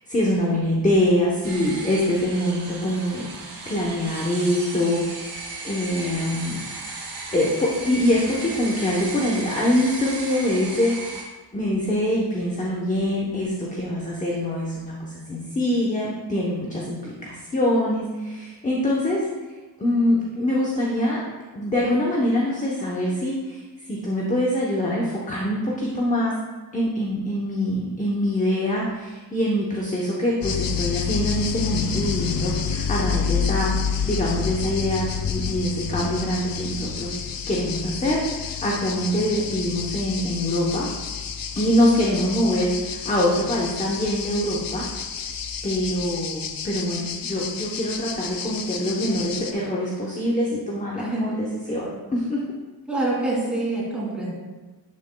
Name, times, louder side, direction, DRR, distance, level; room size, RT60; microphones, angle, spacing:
voice 1, 0.1-3.3 3.7-6.6 7.3-11.3 11.5-19.3 19.8-21.2 21.5-26.3 26.7-40.9 41.6-44.9 45.6-52.4, left 1 dB, 20° left, -4 dB, 0.8 m, -24 dB
sound 1, 1.4-11.2, right 3 dB, 80° right, 2.1 m, -35 dB
sound 2, 30.4-49.5, left 7 dB, 60° left, 0.7 m, -29 dB
voice 2, 50.9-51.3 51.7-51.9 52.9-54.3, right 2 dB, 5° right, -6 dB, 2.5 m, -26 dB
11.5 x 7.1 x 2.2 m, 1.3 s
wide cardioid pair, 180°, 40 cm